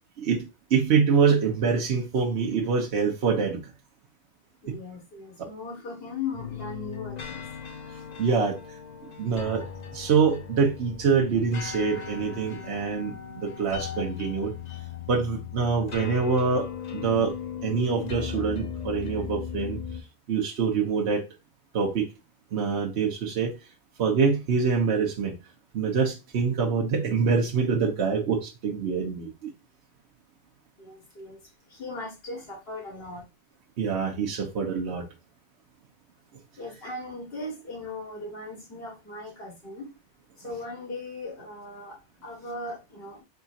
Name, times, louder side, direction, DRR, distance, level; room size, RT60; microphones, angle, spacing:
voice 1, 0.2-3.6 4.7-4.8 8.2-8.6 9.2-9.6 9.9-14.5 15.1-17.3 17.6-19.8 20.3-21.2 21.7-22.1 22.5-23.5 24.0-25.3 25.7-29.5 33.8-35.0 40.4-40.5, right 5 dB, 80° right, 1.1 m, -25 dB
voice 2, 4.6-7.4 30.8-33.2 36.6-39.9 40.4-43.2, left 3 dB, 65° left, 1.7 m, -38 dB
sound 1, 6.3-20.0, left 7 dB, 45° left, 0.7 m, -37 dB
4.0 x 3.6 x 2.4 m
omnidirectional pair, 1.1 m